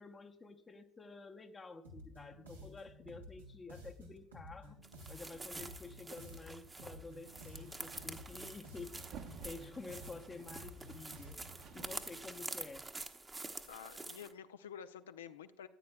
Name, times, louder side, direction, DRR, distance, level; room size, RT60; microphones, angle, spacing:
voice 1, 0.0-4.8 5.1-9.0 9.4-11.4 11.7-12.9, left 3 dB, 25° left, 6 dB, 0.8 m, -50 dB
sound 1, 1.8-11.7, left 1 dB, 90° right, 1.5 m, -53 dB
sound 2, 4.8-14.3, right 3 dB, 20° right, 0.9 m, -48 dB
sound 3, 7.3-12.8, right 5 dB, 60° right, 1.2 m, -55 dB
voice 2, 13.6-15.7, left 8 dB, 80° left, 11 dB, 0.5 m, -50 dB
14.0 x 9.4 x 2.3 m, 0.74 s
figure-of-eight pair, 60°, 0 cm